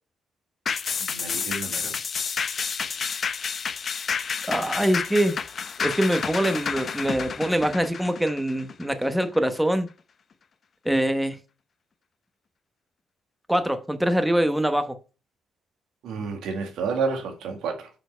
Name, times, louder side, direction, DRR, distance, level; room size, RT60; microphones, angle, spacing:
sound 1, 0.7-9.4 9.8-9.9, left 6 dB, 50° left, 0.7 m, -30 dB
voice 1, 1.0-1.9 16.0-17.9, right 4 dB, 85° right, 1.8 m, -30 dB
voice 2, 4.5-5.4 5.8-9.9 10.8-11.4 13.5-15.0, right 1 dB, 5° right, 1.1 m, -24 dB
6.9 x 4.5 x 5.6 m
cardioid pair, 90°, 0 cm